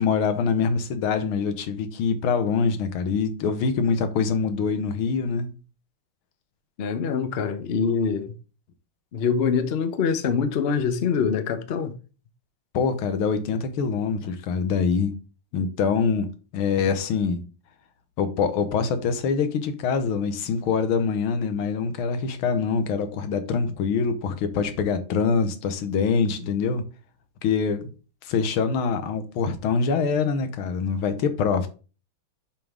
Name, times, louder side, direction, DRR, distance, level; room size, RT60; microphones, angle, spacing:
voice 1, 0.0-5.5 12.7-15.2 15.5-16.3 16.5-17.4 18.2-26.8 27.4-27.9 28.2-31.7, left 5 dB, 90° left, 1.8 m, -24 dB
voice 2, 6.8-8.3 9.1-12.0, left 6 dB, 65° left, 0.6 m, -24 dB
7.4 x 5.4 x 3.6 m
omnidirectional pair, 2.2 m